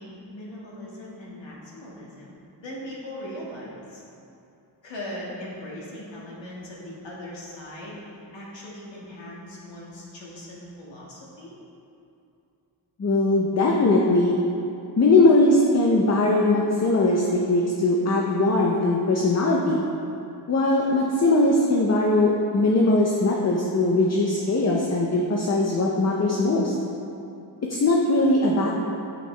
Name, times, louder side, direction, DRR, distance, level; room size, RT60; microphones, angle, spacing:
voice 1, 0.0-2.4 2.6-4.0 4.8-8.0 8.3-11.5, left 1 dB, 85° left, -5 dB, 1.9 m, -39 dB
voice 2, 13.0-14.4 15.0-19.8 20.5-26.7 27.7-28.7, left 2 dB, 35° left, -1 dB, 0.6 m, -20 dB
9.3 x 6.6 x 3.3 m, 2.6 s
wide cardioid pair, 155°, 44 cm